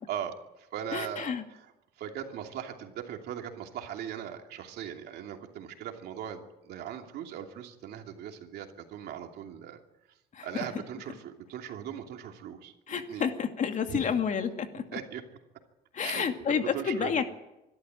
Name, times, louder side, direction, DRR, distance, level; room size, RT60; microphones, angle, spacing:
voice 1, 0.1-9.8 10.4-13.3 13.9-14.1 14.9-15.2 16.0-17.2, right 9 dB, 75° right, 4 dB, 2.8 m, -39 dB
voice 2, 0.9-1.4 10.3-10.5 12.9-14.8 15.9-17.2, left 7 dB, 45° left, 6 dB, 2.4 m, -30 dB
25.0 x 12.5 x 9.1 m, 0.95 s
cardioid pair, 110°, 17 cm